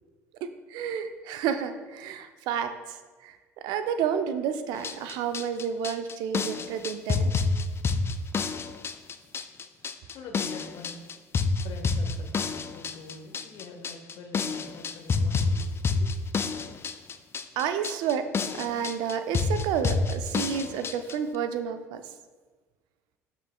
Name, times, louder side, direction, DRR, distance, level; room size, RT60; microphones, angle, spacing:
voice 1, 0.4-3.0 3.2-3.4 3.6-7.3 17.6-22.0, right 8 dB, 65° right, 9 dB, 0.5 m, -30 dB
sound 1, 4.7-21.2, left 4 dB, 30° left, 0.4 m, -29 dB
voice 2, 10.1-11.0 11.6-16.2, left 4 dB, 55° left, 4 dB, 1.1 m, -45 dB
12.5 x 4.4 x 2.3 m, 1.4 s
hypercardioid pair, 60°, 8 cm